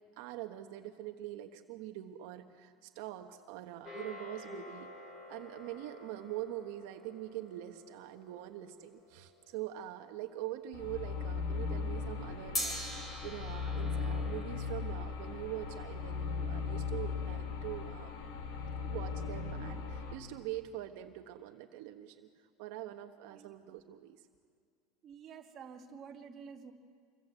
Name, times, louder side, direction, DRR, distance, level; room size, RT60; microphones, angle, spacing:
voice 1, 0.2-4.9 5.3-18.1 18.9-22.3 22.6-24.3, right 13 dB, 65° right, 6 dB, 1.2 m, -44 dB
sound 1, 3.8-10.3 12.5-17.0, left 1 dB, 20° left, 5.0 m, -46 dB
sound 2, 10.7-20.2, left 5 dB, 75° left, 3.7 m, -38 dB
voice 2, 25.0-26.7, right 6 dB, 25° right, 2 dB, 2.0 m, -50 dB
27.0 x 23.5 x 8.2 m, 2.1 s
supercardioid pair, 160°, 0 cm